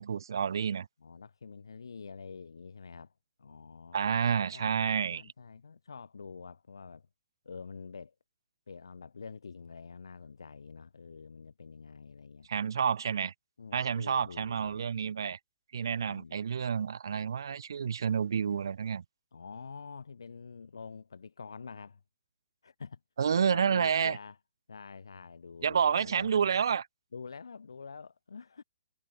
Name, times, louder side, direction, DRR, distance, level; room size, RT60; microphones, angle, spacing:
voice 1, 0.0-0.9 3.9-5.2 12.5-13.3 13.7-15.4 15.7-19.0 23.2-24.2 25.6-26.8, right 7 dB, 65° right, 0.5 m, -29 dB
voice 2, 1.0-3.1 3.4-4.0 4.5-7.1 7.4-8.1 8.7-12.5 13.6-14.8 16.0-16.4 19.3-22.0 22.6-23.0 23.3-24.4 24.7-26.5 27.1-28.6, left 5 dB, 75° left, 0.8 m, -47 dB
figure-of-eight pair, 125°, 2 cm